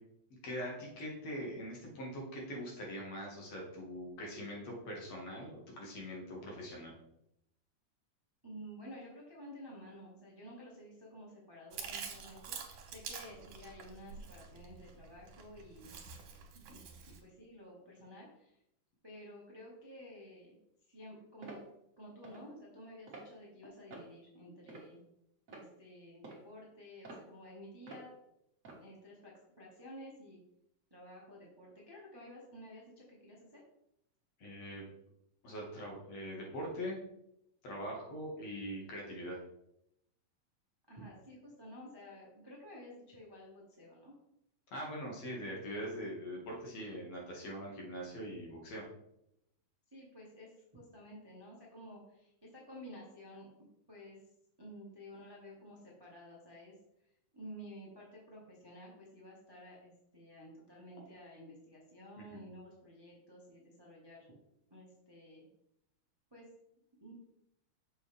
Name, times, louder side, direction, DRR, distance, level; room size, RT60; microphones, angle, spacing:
voice 1, 0.4-6.9 34.4-34.9 35.4-37.0 37.6-39.4 44.7-48.8 62.3-62.4, equal, 65° left, -2 dB, 2.9 m, -42 dB
voice 2, 8.4-15.9 16.7-16.8 17.1-18.6 19.0-20.6 20.9-21.6 22.0-25.0 25.5-28.1 28.8-30.4 30.9-33.6 40.9-44.1 49.9-53.5 53.9-54.2 54.6-56.7 57.3-64.2 64.7-65.5 66.3-66.5 67.0-67.1, equal, 15° right, -4 dB, 0.8 m, -52 dB
Chewing mastication, 11.7-17.2, right 6 dB, 75° right, 2.4 m, -47 dB
sound 1, 21.4-21.6 22.2-22.4 23.1-23.3 23.9-24.1 24.7-25.0 25.5-25.7 26.2-26.5 27.0-27.2 27.9-28.1 28.6-28.8, right 3 dB, 35° right, 1.5 m, -49 dB
6.9 x 5.9 x 3.4 m, 0.79 s
omnidirectional pair, 3.4 m